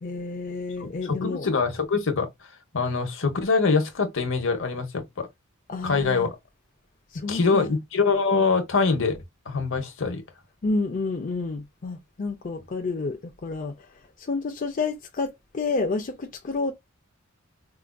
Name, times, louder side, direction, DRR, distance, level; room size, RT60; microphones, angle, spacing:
voice 1, 0.0-1.5 5.7-6.3 7.1-7.7 10.6-13.9 14.2-16.7, left 3 dB, 40° left, 0.5 m, -30 dB
voice 2, 0.8-2.3 2.7-5.3 5.8-6.3 7.3-9.2 9.5-10.2, left 4 dB, 65° left, 0.9 m, -24 dB
4.7 x 2.4 x 2.2 m
head